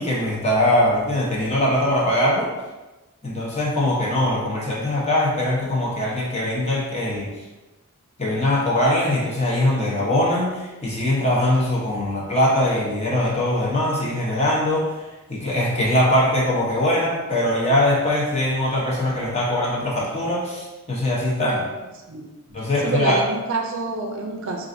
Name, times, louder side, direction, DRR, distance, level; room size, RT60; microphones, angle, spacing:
voice 1, 0.0-2.5 3.2-7.3 8.2-15.0 15.3-21.6 22.5-23.3, left 1 dB, 30° left, -5 dB, 0.8 m, -21 dB
voice 2, 22.8-24.7, right 3 dB, 60° right, 2 dB, 0.4 m, -27 dB
4.7 x 2.5 x 2.6 m, 1.1 s
head